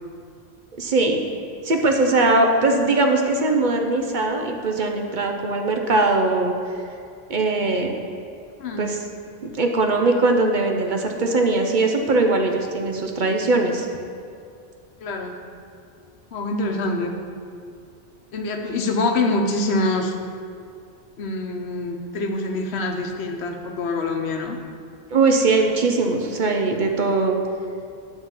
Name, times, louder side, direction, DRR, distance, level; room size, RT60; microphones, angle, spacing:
voice 1, 0.8-1.2 1.6-6.5 7.3-7.9 8.8-9.0 9.4-13.9 25.1-27.4, right 3 dB, 50° right, 3 dB, 0.8 m, -20 dB
voice 2, 15.0-15.3 16.3-17.1 18.3-20.1 21.2-24.6, left 2 dB, 80° left, 4 dB, 1.1 m, -25 dB
9.8 x 3.8 x 7.3 m, 2.4 s
omnidirectional pair, 1.1 m